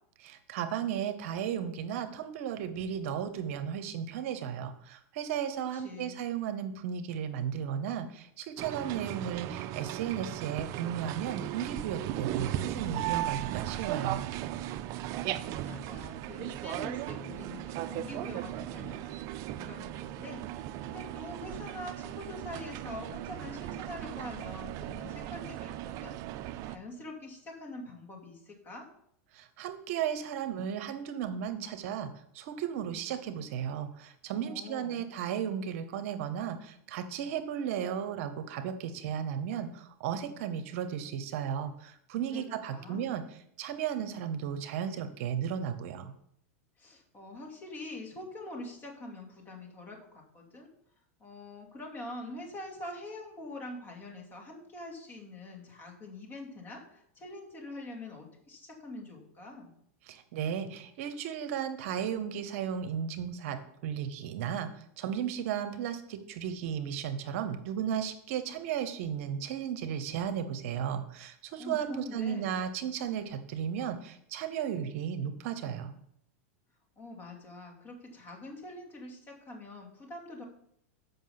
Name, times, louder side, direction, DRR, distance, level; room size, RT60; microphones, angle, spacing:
voice 1, 0.2-14.3 29.3-32.1 32.3-43.2 43.6-46.1 60.1-76.0, right 8 dB, 65° right, 10 dB, 0.8 m, -35 dB
voice 2, 5.7-6.2 15.2-28.9 34.4-35.1 42.3-43.0 46.8-50.7 51.2-59.7 71.6-72.6 77.0-80.4, left 2 dB, 25° left, -1 dB, 2.4 m, -45 dB
sound 1, 8.6-26.8, right 13 dB, 45° right, 0.4 m, -37 dB
7.3 x 5.5 x 5.7 m, 0.70 s
hypercardioid pair, 125°, 8 cm